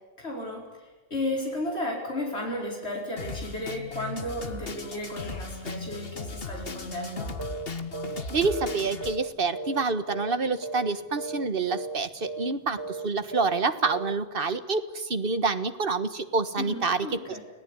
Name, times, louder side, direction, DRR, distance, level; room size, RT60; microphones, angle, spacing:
voice 1, 0.2-0.8 1.1-7.3 16.6-17.4, left 1 dB, 85° left, -1 dB, 5.0 m, -33 dB
Drum kit, 3.2-9.2, left 3 dB, 60° left, 1.9 m, -37 dB
sound 1, 7.4-7.7 7.9-8.2 8.5-9.8 10.1-10.4 10.6-10.9 11.2-11.4 11.7-12.0 12.2-12.5 12.8-13.0 13.3-13.6 13.8-14.1, right 3 dB, 20° right, 1.5 m, -35 dB
voice 2, 8.3-17.4, right 4 dB, 60° right, 10 dB, 1.7 m, -27 dB
30.0 x 18.5 x 9.8 m, 1.2 s
omnidirectional pair, 1.1 m